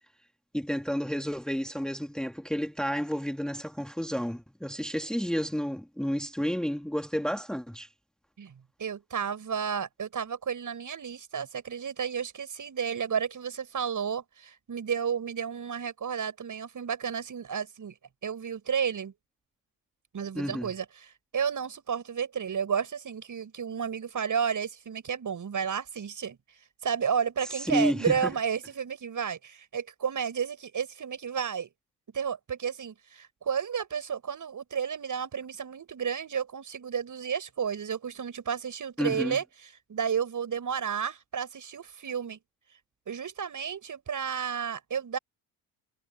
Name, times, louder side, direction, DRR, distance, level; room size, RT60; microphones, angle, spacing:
voice 1, 0.5-7.9 20.4-20.7 27.5-28.3 39.0-39.4, equal, ahead, 2.2 m, -31 dB
voice 2, 8.8-17.9 18.2-19.1 20.1-26.4 26.8-31.7 32.1-42.4 43.1-45.2, right 7 dB, 45° right, 6.8 m, -32 dB
hypercardioid pair, 60°, 44 cm